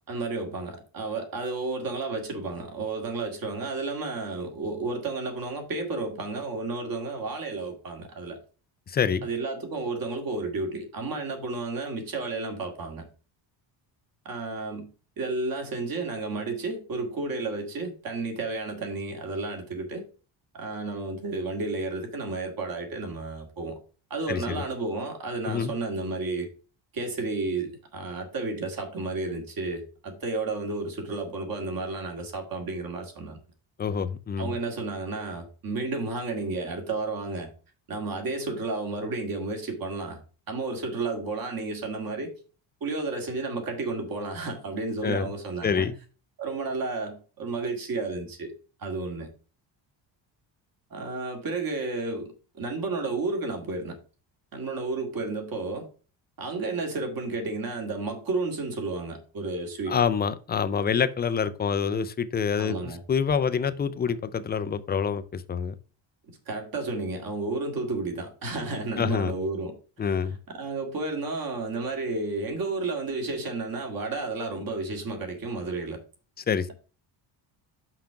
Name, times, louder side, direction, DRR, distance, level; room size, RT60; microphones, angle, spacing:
voice 1, 0.1-8.4 9.2-13.0 14.3-14.9 15.2-20.1 20.5-23.8 24.1-26.5 26.9-33.4 34.4-37.5 37.9-40.2 40.5-42.3 42.8-45.9 46.4-48.5 48.8-49.3 50.9-54.0 54.5-55.9 56.4-60.0 62.6-63.0 66.5-69.8 70.0-70.2 70.5-76.0, right 3 dB, 45° right, 2.1 m, -32 dB
voice 2, 8.9-9.3 24.3-24.6 25.4-25.7 33.8-34.6 45.0-45.3 45.6-46.0 59.9-65.8 69.0-69.3 70.0-70.4 76.5-76.7, left 6 dB, 25° left, 0.3 m, -27 dB
5.8 x 5.0 x 5.7 m
cardioid pair, 160°, 46 cm